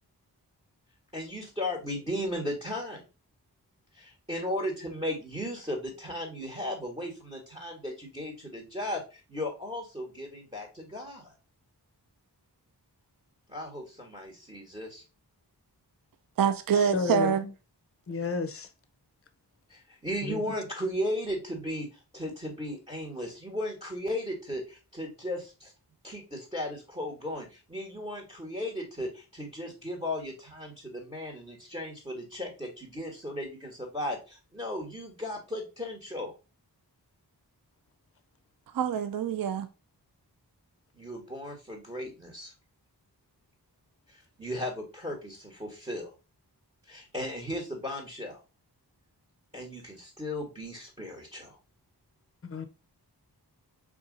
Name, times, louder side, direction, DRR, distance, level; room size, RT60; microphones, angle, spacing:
voice 1, 1.1-3.0 3.9-11.3 13.5-15.0 19.7-25.7 26.0-36.3 40.9-42.5 44.1-46.1 46.9-48.4 49.5-51.6, left 1 dB, 15° right, 1.2 m, -36 dB
voice 2, 16.4-17.4 38.7-39.7, right 7 dB, 55° right, 0.5 m, -25 dB
voice 3, 16.9-17.3 18.1-18.7 20.2-20.4 52.4-52.6, left 5 dB, 35° left, 0.6 m, -31 dB
3.6 x 2.7 x 3.8 m
wide cardioid pair, 45°, 41 cm